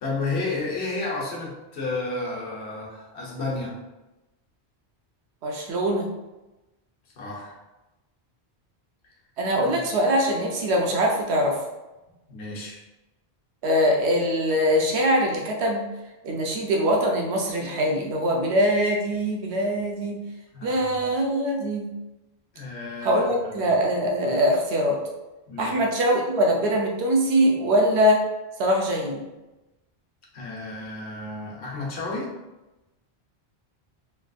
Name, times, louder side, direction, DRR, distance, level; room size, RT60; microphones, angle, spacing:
voice 1, 0.0-3.8 7.2-7.6 9.6-9.8 12.3-12.8 20.5-20.8 22.5-23.5 25.5-25.8 30.3-32.3, left 3 dB, 80° left, -3 dB, 1.1 m, -32 dB
voice 2, 5.4-6.1 9.4-11.6 13.6-15.8 16.2-20.2 20.6-21.9 23.0-25.0 25.6-28.2 28.6-29.2, equal, 85° right, 0 dB, 0.9 m, -22 dB
3.3 x 2.5 x 2.3 m, 1.0 s
omnidirectional pair, 1.1 m